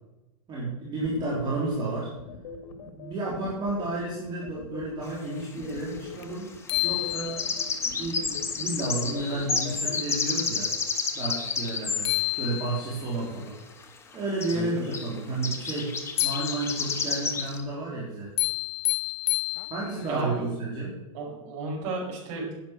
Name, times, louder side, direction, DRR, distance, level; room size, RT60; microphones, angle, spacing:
voice 1, 0.5-2.1 2.8-6.5 6.8-7.4 8.0-10.7 11.2-13.5 14.1-18.3 19.7-21.0, right 2 dB, 25° right, -5 dB, 3.6 m, -31 dB
sound 1, 1.0-10.0, left 6 dB, 65° left, 2.1 m, -43 dB
sound 2, 5.0-5.1 6.9-12.1 13.8-13.9 14.1-14.2 14.4-14.6 14.9-15.1 15.4-17.6, left 5 dB, 15° left, 1.3 m, -30 dB
sound 3, 6.2-6.3 6.7-7.8 11.7-11.8 12.0-13.1 16.2-17.1 18.4-20.1, left 22 dB, 50° left, 0.4 m, -29 dB
voice 2, 14.5-14.9 20.1-20.5 21.1-22.5, right 3 dB, 55° right, -3 dB, 5.4 m, -33 dB
10.5 x 9.4 x 6.2 m, 0.99 s
supercardioid pair, 140°, 17 cm